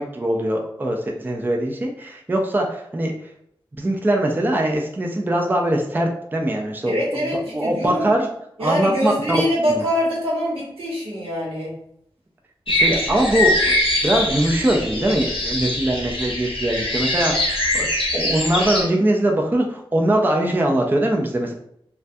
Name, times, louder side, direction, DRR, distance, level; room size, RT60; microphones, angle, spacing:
voice 1, 0.0-3.1 3.8-7.0 7.5-8.3 8.6-9.4 9.7-9.8 12.7-17.9 18.1-21.5, right 1 dB, 20° right, 1 dB, 0.4 m, -22 dB
voice 2, 6.9-8.1 8.6-11.7, equal, 90° right, -5 dB, 0.9 m, -24 dB
sound 1, 12.7-18.8, left 1 dB, 70° left, 0.6 m, -23 dB
2.2 x 2.2 x 2.6 m, 0.71 s
wide cardioid pair, 65°, 10 cm